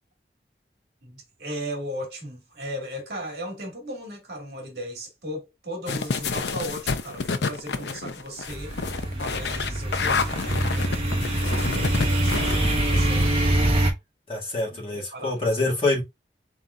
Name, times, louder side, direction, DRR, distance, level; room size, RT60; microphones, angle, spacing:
voice 1, 1.0-8.7 9.1-13.3 14.7-15.7, equal, 65° right, 2.0 m, -37 dB
sound 1, 5.9-12.8, left 4 dB, 80° left, 0.6 m, -29 dB
sound 2, 8.5-13.9, right 1 dB, 35° right, 1.2 m, -24 dB
voice 2, 14.3-16.0, left 2 dB, 30° left, 2.0 m, -25 dB
4.2 x 4.0 x 2.4 m
head